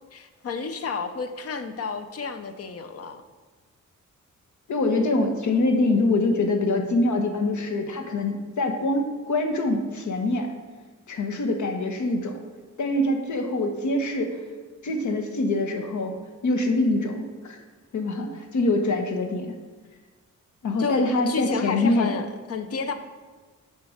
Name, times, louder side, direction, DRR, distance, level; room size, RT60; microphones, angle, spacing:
voice 1, 0.1-3.2 18.7-18.8 20.8-22.9, left 4 dB, 50° left, 9 dB, 0.7 m, -30 dB
voice 2, 4.7-10.5 11.1-12.4 12.8-14.4 14.8-16.1 16.4-17.6 17.9-19.5 20.6-22.1, left 2 dB, 75° left, 5 dB, 1.1 m, -24 dB
8.4 x 4.2 x 6.3 m, 1.4 s
wide cardioid pair, 155°, 30 cm